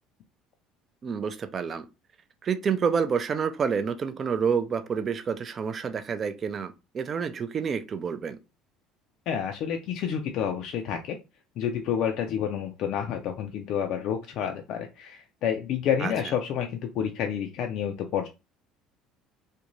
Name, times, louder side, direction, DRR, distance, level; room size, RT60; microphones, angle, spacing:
voice 1, 1.0-1.9 2.4-8.4 16.0-16.1, right 6 dB, 40° right, 0.4 m, -28 dB
voice 2, 9.3-11.2 11.6-18.3, left 8 dB, 65° left, 0.3 m, -29 dB
2.5 x 2.2 x 3.0 m
supercardioid pair, 95°, 0 cm